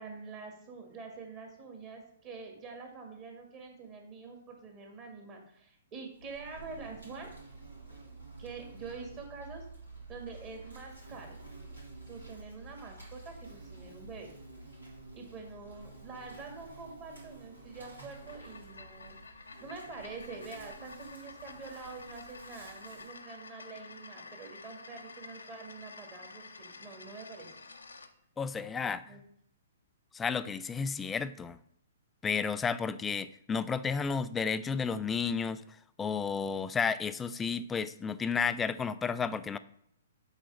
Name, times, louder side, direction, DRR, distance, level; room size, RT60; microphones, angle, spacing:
voice 1, 0.0-7.3 8.4-9.6 10.1-11.4 12.1-14.3 15.1-19.2 19.6-27.5 29.0-29.2, right 4 dB, 30° right, 2 dB, 1.9 m, -46 dB
Insect, 6.1-23.2, right 3 dB, 85° right, 2.9 m, -50 dB
sound 1, 18.0-28.1, left 4 dB, 75° left, 0.7 m, -50 dB
voice 2, 28.4-29.0 30.1-31.6 32.2-35.6 36.0-39.6, left 5 dB, 15° left, 14 dB, 0.3 m, -32 dB
7.4 x 4.1 x 5.4 m, 0.72 s
figure-of-eight pair, 120°, 0 cm